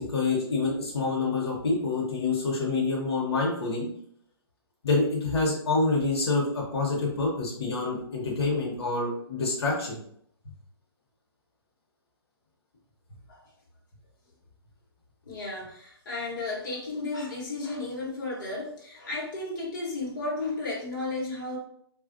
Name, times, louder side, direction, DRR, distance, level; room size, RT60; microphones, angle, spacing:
voice 1, 0.0-3.9 4.8-10.0, left 3 dB, 75° left, -3 dB, 1.0 m, -27 dB
voice 2, 15.3-21.6, left 2 dB, 50° left, -5 dB, 1.2 m, -33 dB
3.3 x 2.4 x 2.5 m, 0.67 s
hypercardioid pair, 170°, 14 cm